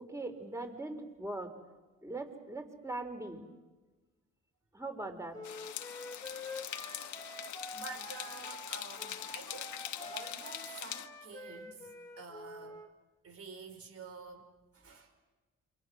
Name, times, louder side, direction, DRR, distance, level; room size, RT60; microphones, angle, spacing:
voice 1, 0.0-1.5 2.0-3.5 4.7-5.4, right 2 dB, 10° right, 6 dB, 4.1 m, -40 dB
Wind instrument woodwind instrument, 5.3-12.9, left 2 dB, 10° left, 2.8 m, -47 dB
sound 1, 5.4-11.1, left 11 dB, 70° left, 1.5 m, -43 dB
voice 2, 7.7-11.9 12.2-12.8 13.2-15.3, right 4 dB, 50° right, 6 dB, 5.2 m, -49 dB
28.0 x 25.0 x 6.4 m, 1.2 s
cardioid pair, 90°, 30 cm